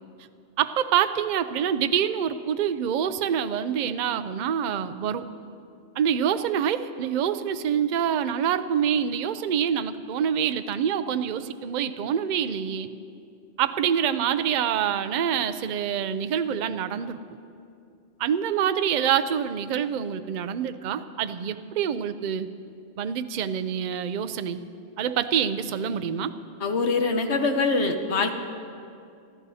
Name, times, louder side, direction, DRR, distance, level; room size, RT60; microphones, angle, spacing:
voice 1, 0.6-5.3 6.0-12.9 13.6-17.2 18.2-22.5 23.0-24.6 25.0-26.3, right 8 dB, 55° right, 11 dB, 0.5 m, -26 dB
voice 2, 26.6-28.3, left 3 dB, 65° left, 6 dB, 1.2 m, -24 dB
26.5 x 13.5 x 2.8 m, 2.5 s
omnidirectional pair, 1.2 m